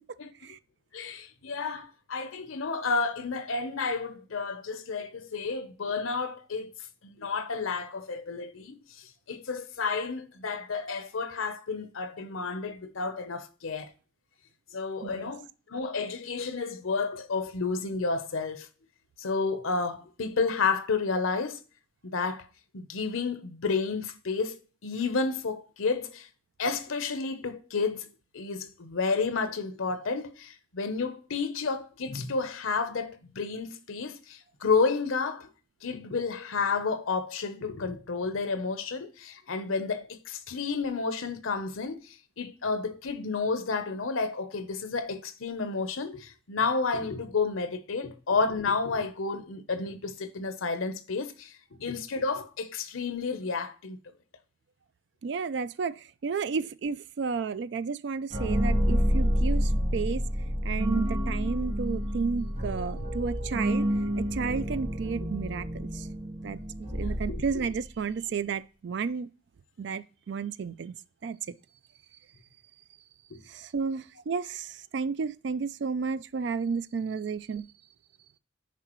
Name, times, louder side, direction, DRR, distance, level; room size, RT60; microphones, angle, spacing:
voice 1, 0.2-0.6 0.9-6.7 7.0-13.9 14.7-18.7 19.2-21.6 22.1-22.5 22.7-26.3 26.6-28.1 28.3-35.5 35.8-54.0 65.2-65.3 67.0-67.7 73.3-73.4, left 4 dB, 90° left, 0.8 m, -31 dB
voice 2, 55.2-60.2 60.6-63.9 64.2-66.1 66.4-69.3 69.8-70.9 71.2-71.4 73.5-77.7, right 5 dB, 60° right, 0.3 m, -32 dB
sound 1, 58.3-68.0, equal, 30° right, 1.3 m, -29 dB
10.0 x 4.9 x 3.1 m
head